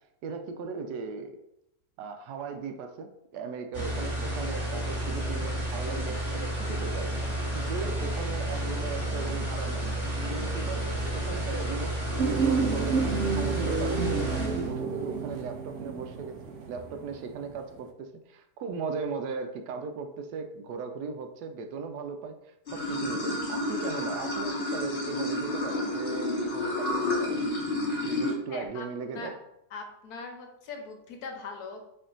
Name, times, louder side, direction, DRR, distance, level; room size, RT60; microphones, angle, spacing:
voice 1, 0.2-1.4 2.0-7.1 7.5-9.9 10.2-27.5 28.0-29.3, right 5 dB, 85° right, 6 dB, 1.2 m, -38 dB
desk fan on high lowder, 3.7-14.7, right 1 dB, 10° right, 1.5 m, -31 dB
sound 1, 12.2-17.5 17.8-17.9, right 4 dB, 65° right, 0.7 m, -30 dB
Water / Sink (filling or washing), 22.7-28.3, left 2 dB, 45° left, 1.0 m, -30 dB
voice 2, 28.5-28.9 29.1-29.3 29.7-31.8, left 4 dB, 75° left, 3 dB, 1.2 m, -41 dB
4.4 x 3.1 x 3.8 m, 0.82 s
omnidirectional pair, 1.7 m